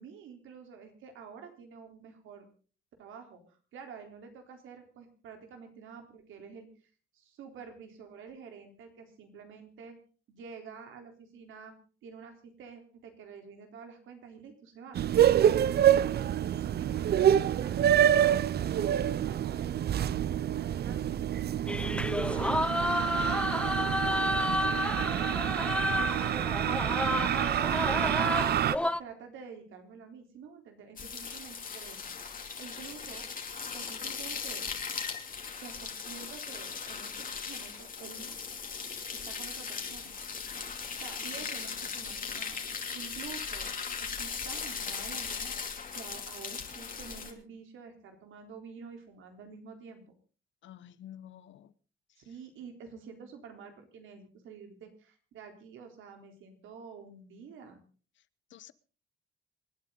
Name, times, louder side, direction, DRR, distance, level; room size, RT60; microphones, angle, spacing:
voice 1, 0.0-2.5 3.0-6.7 7.1-10.0 10.3-11.7 12.0-15.0 15.4-16.0 16.7-21.2 21.7-28.3 29.0-32.0 32.3-33.3 33.7-34.6 35.6-38.3 39.1-40.1 40.7-42.6 42.9-43.7 44.0-45.5 45.9-50.0 52.2-57.8, right 6 dB, 80° right, 3.8 m, -49 dB
sound 1, 15.0-28.8, right 10 dB, 55° right, 0.6 m, -27 dB
sound 2, 21.7-29.0, left 1 dB, 5° left, 0.6 m, -31 dB
sound 3, 31.0-47.3, left 6 dB, 45° left, 2.9 m, -38 dB
voice 2, 50.6-51.7 58.5-58.7, left 11 dB, 70° left, 1.0 m, -49 dB
27.5 x 9.1 x 3.9 m
cardioid pair, 90°, 20 cm